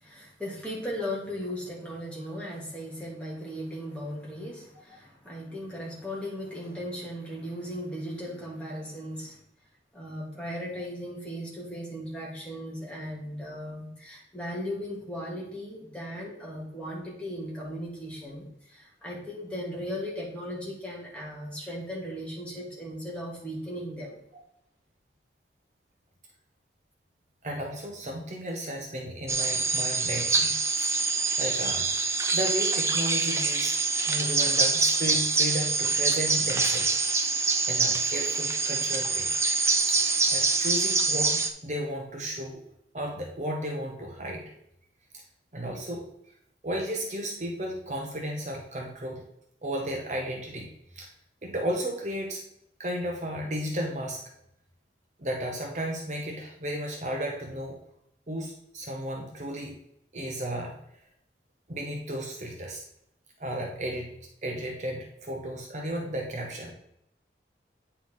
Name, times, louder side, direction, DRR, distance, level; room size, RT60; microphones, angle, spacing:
voice 1, 0.0-9.4 9.9-24.2, equal, 5° left, -5 dB, 2.0 m, -37 dB
voice 2, 27.4-30.5 31.4-31.9 32.3-33.8 34.1-36.9 37.7-39.3 39.9-40.1 40.3-42.6 42.9-44.5 45.1-45.2 45.5-46.0 46.6-49.2 49.6-51.1 51.4-52.4 52.8-54.2 55.2-57.8 58.3-59.8 60.1-60.8 61.7-62.8 63.4-64.1 64.4-66.7, equal, 40° right, 0 dB, 0.9 m, -34 dB
sound 1, 29.3-41.5, right 4 dB, 15° right, 0.4 m, -25 dB
9.1 x 4.6 x 3.7 m, 0.76 s
head